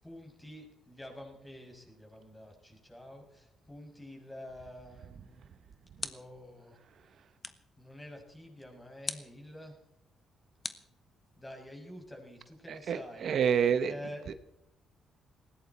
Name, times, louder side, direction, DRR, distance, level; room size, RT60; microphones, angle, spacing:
voice 1, 0.0-5.5 6.0-6.8 7.8-9.8 11.4-13.3 13.9-14.4, left 1 dB, 10° left, 2 dB, 6.4 m, -48 dB
sound 1, 5.3-6.5 7.4-7.8 9.0-9.4 10.6-11.5, left 3 dB, 30° left, 1.4 m, -42 dB
voice 2, 12.7-13.9 14.3-14.4, right 7 dB, 60° right, 11 dB, 1.0 m, -28 dB
19.5 x 16.5 x 4.2 m, 0.81 s
cardioid pair, 90°, 0 cm